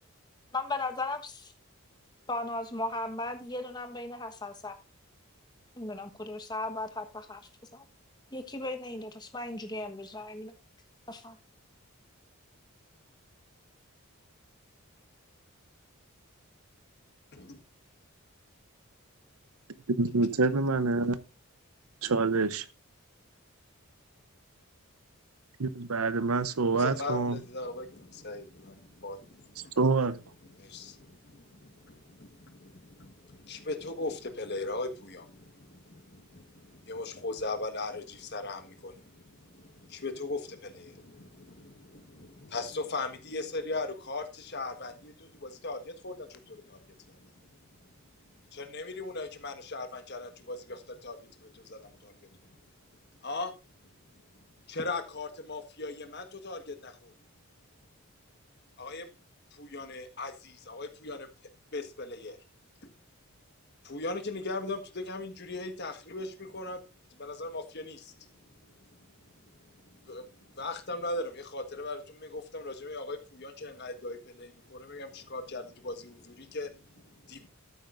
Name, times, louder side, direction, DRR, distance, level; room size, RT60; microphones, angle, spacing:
voice 1, 0.5-1.5 2.3-4.7 5.8-7.4 7.7-7.8 8.3-10.5 11.1-11.4, left 2 dB, 20° left, 1.3 m, -36 dB
voice 2, 20.0-21.2 22.0-22.7 25.6-27.4 29.8-30.2, right 3 dB, 75° right, 0.8 m, -26 dB
voice 3, 26.7-29.7 30.5-47.3 48.5-52.3 53.2-53.5 54.7-57.1 58.8-59.1 59.5-61.3 61.7-62.4 62.8-62.9 63.8-66.8 67.2-68.3 68.9-69.0 69.4-77.5, left 2 dB, 50° left, 1.5 m, -39 dB
12.0 x 9.2 x 2.6 m
head